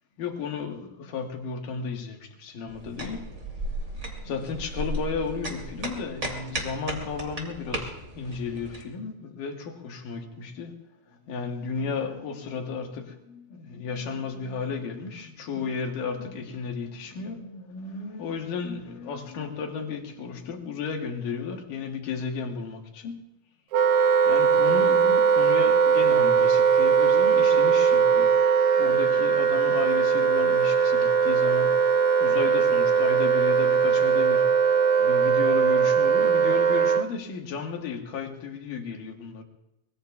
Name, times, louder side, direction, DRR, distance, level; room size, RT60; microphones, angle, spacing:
voice 1, 0.2-3.3 4.2-10.8 11.1-23.3 24.3-28.3 28.8-39.4, left 5 dB, 90° left, 3.2 m, -34 dB
sound 1, 2.7-8.8, right 1 dB, 25° right, 3.0 m, -35 dB
Wind instrument woodwind instrument, 23.7-37.1, right 6 dB, 80° right, 1.4 m, -20 dB
24.0 x 23.5 x 2.4 m
omnidirectional pair, 3.7 m